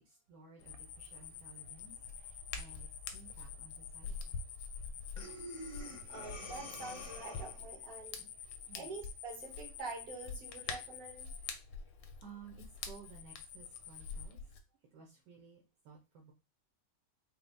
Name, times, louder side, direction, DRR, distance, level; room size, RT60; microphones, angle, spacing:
voice 1, 0.0-4.4 8.1-8.3 8.7-8.9 11.8-12.0 12.2-14.5 14.9-16.3, right 5 dB, 75° right, 0 dB, 1.3 m, -56 dB
Hands, 0.6-14.6, left 4 dB, 85° left, 1.3 m, -47 dB
sound 1, 0.6-11.5 12.6-14.3, left 10 dB, 70° left, 0.8 m, -49 dB
Breathing, 5.2-7.7, equal, 40° left, 0.7 m, -47 dB
voice 2, 6.1-8.3 8.8-11.3, right 3 dB, 55° right, 0 dB, 1.7 m, -46 dB
4.3 x 2.1 x 3.8 m, 0.28 s
omnidirectional pair, 1.9 m